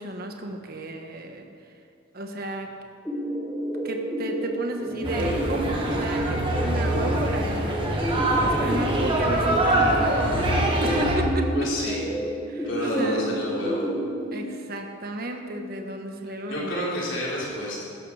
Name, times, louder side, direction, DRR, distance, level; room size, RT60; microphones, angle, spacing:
voice 1, 0.0-1.5 2.1-2.7 3.8-7.8 8.4-11.5 11.8-11.9 12.5-13.4 14.3-16.7, right 1 dB, 45° right, 4 dB, 1.3 m, -33 dB
sound 1, 3.0-14.3, right 1 dB, 10° left, 2.8 m, -30 dB
sound 2, 5.0-11.2, right 1 dB, 25° right, 2.0 m, -24 dB
voice 2, 11.5-12.0 12.6-13.8 16.5-17.8, left 1 dB, 65° left, -6 dB, 4.1 m, -29 dB
16.0 x 12.5 x 4.9 m, 2.4 s
head